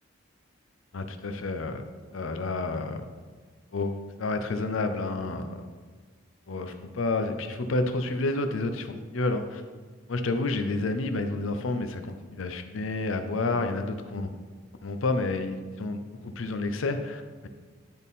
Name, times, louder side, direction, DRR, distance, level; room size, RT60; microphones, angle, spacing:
voice 1, 0.9-1.8 2.1-3.0 3.7-3.9 4.2-5.6 6.5-9.6 10.1-14.3 14.8-17.5, left 2 dB, 75° left, 7 dB, 0.6 m, -30 dB
10.5 x 3.6 x 4.1 m, 1.5 s
head